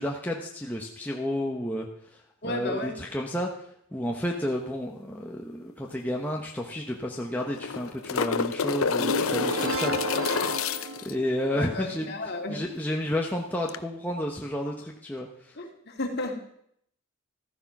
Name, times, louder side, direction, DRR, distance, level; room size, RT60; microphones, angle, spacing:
voice 1, 0.0-1.9 2.4-3.5 3.9-10.0 11.0-12.1 12.5-15.3, left 1 dB, 10° left, -1 dB, 1.0 m, -31 dB
voice 2, 2.4-2.9 11.5-12.6 15.6-16.4, left 1 dB, 45° left, 2 dB, 2.6 m, -33 dB
sound 1, 5.9-6.0 6.3-6.4 7.4-11.1 13.7-13.8, left 5 dB, 70° left, 0.7 m, -28 dB
sound 2, 9.0-11.8, right 2 dB, 70° right, 1.8 m, -32 dB
14.5 x 14.0 x 6.0 m, 0.71 s
head